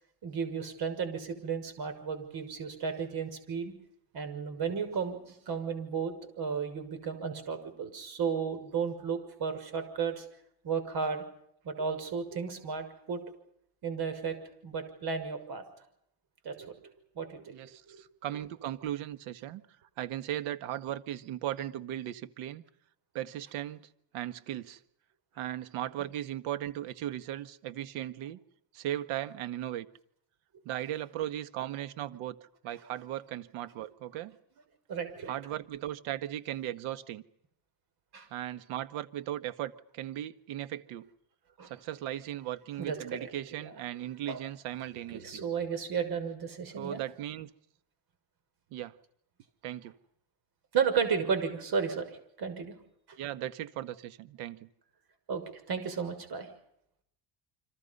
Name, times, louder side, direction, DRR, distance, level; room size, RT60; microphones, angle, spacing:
voice 1, 0.2-3.7 4.1-10.3 10.6-11.2 11.6-13.2 13.8-14.4 14.6-15.6 16.4-16.7 17.1-17.6 17.9-18.0 34.9-35.3 38.1-38.3 41.6-41.7 42.8-43.3 43.6-43.7 44.3-44.4 45.1-47.0 50.7-52.1 52.4-52.8 53.1-53.2 55.3-56.5, right 6 dB, 50° right, 8 dB, 6.3 m, -33 dB
voice 2, 17.5-19.6 20.0-22.6 23.1-23.8 24.1-24.8 25.4-28.4 28.7-29.9 30.6-32.4 32.6-34.4 35.3-37.2 38.3-41.1 41.6-45.4 46.8-47.5 48.7-48.9 49.6-49.9 53.2-54.7, right 12 dB, 85° right, 11 dB, 1.7 m, -37 dB
30.0 x 25.5 x 5.6 m, 0.73 s
cardioid pair, 145°, 47 cm